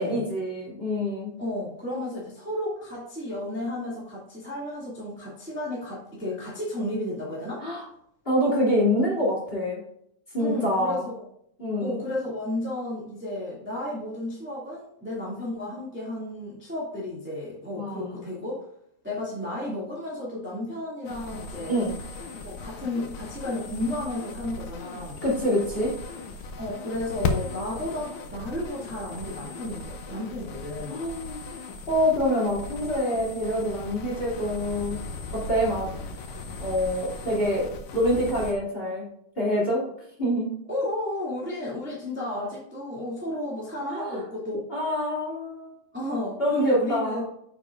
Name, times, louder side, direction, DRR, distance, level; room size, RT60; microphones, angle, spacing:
voice 1, 0.0-1.3 7.6-7.8 8.2-9.8 10.3-11.1 11.6-12.0 17.7-18.1 21.7-21.9 25.2-25.9 30.9-31.4 31.9-35.0 35.5-35.9 36.6-39.1 39.4-39.8 40.2-40.5 43.9-44.2 44.7-45.7 46.4-47.2, equal, 20° left, -6 dB, 2.6 m, -26 dB
voice 2, 1.4-7.6 10.4-11.2 11.8-18.6 19.0-21.7 22.4-25.2 26.6-31.0 40.7-44.6 45.9-47.2, left 1 dB, 5° right, -7 dB, 1.9 m, -33 dB
sound 1, 21.0-38.5, left 4 dB, 75° left, 2.0 m, -37 dB
8.8 x 7.0 x 2.6 m, 0.72 s
omnidirectional pair, 3.4 m